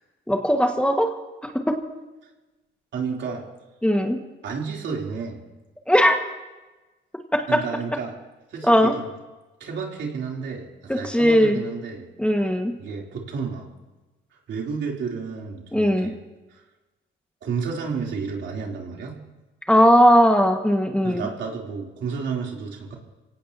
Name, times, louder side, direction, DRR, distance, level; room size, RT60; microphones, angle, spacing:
voice 1, 0.3-1.1 1.4-1.8 3.8-4.2 5.9-6.2 7.3-7.6 8.6-8.9 10.9-11.6 12.2-12.7 15.7-16.1 19.7-21.3, equal, 5° left, 3 dB, 1.7 m, -18 dB
voice 2, 2.9-3.4 4.4-5.4 7.5-8.2 8.5-9.1 9.6-12.1 12.8-13.7 14.5-16.1 16.5-16.6 17.4-19.2 21.0-22.9, right 5 dB, 70° right, -1 dB, 3.4 m, -31 dB
26.0 x 17.5 x 2.9 m, 1.1 s
cardioid pair, 90°, 20 cm